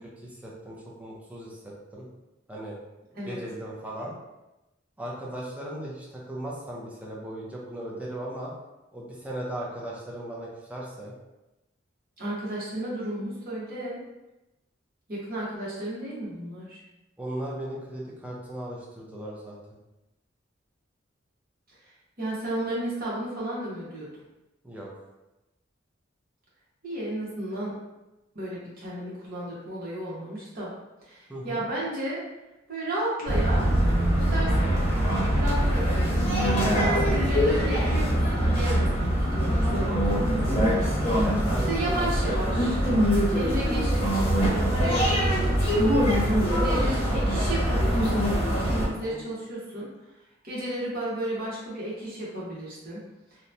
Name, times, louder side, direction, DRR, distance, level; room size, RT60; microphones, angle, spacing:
voice 1, 0.2-2.1 2.5-2.8 3.3-4.1 5.0-8.5 8.9-11.1 17.2-19.6 24.6-24.9 31.3-31.6 40.8-42.1 49.0-49.2, right 1 dB, 5° right, -5 dB, 0.6 m, -37 dB
voice 2, 12.2-14.0 15.1-16.8 22.2-24.1 26.8-27.7 28.3-30.7 31.0-32.2 32.7-33.6 34.2-34.8 35.3-35.9 36.3-40.9 41.7-42.8 43.3-45.8 46.1-48.4 48.7-49.9 50.4-53.0, right 1 dB, 50° right, -7 dB, 1.1 m, -33 dB
sound 1, 33.3-48.9, equal, 30° left, 0.8 m, -23 dB
3.0 x 2.1 x 2.6 m, 0.98 s
head